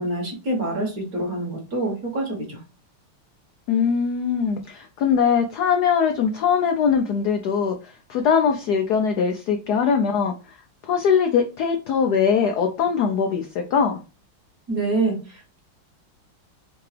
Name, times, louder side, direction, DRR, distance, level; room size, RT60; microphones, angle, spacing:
voice 1, 0.0-2.6 14.7-15.6, right 2 dB, 50° right, 0 dB, 1.5 m, -26 dB
voice 2, 3.7-10.3 10.8-14.0, left 6 dB, 75° left, 4 dB, 0.9 m, -21 dB
3.8 x 3.4 x 3.2 m, 0.31 s
omnidirectional pair, 2.3 m